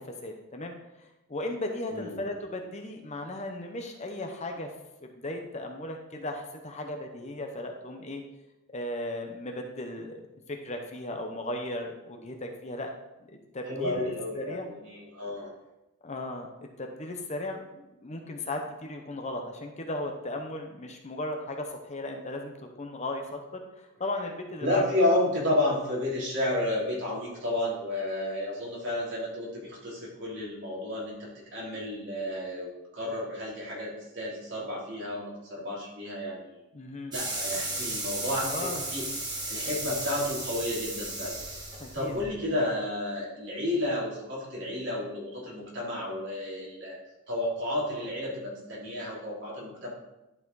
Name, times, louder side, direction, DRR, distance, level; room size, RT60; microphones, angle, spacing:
voice 1, 0.0-4.7 5.0-8.2 8.7-10.2 10.5-12.9 13.3-14.7 16.0-24.8 36.7-37.1 38.4-38.8 41.8-42.1, left 1 dB, 30° left, 3 dB, 0.7 m, -36 dB
voice 2, 13.6-15.5 24.6-36.6 37.1-39.1 39.5-41.4 41.9-47.0 47.3-49.9, left 1 dB, 55° right, -6 dB, 3.2 m, -31 dB
sound 1, 37.1-42.3, right 2 dB, 20° right, 1.5 m, -34 dB
11.0 x 4.8 x 4.0 m, 0.97 s
head